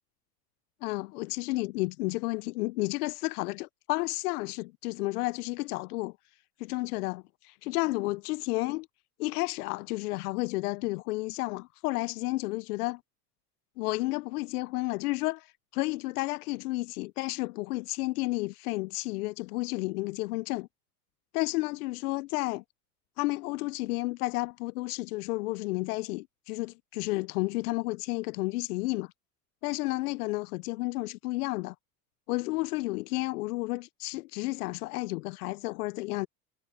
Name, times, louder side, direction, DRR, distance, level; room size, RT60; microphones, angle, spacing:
voice 1, 0.8-6.2 6.6-8.9 9.2-13.0 13.8-20.7 21.3-22.6 23.2-29.1 29.6-31.7 32.3-36.3, left 21 dB, 70° left, 0.8 m, -32 dB
hypercardioid pair, 80°, 47 cm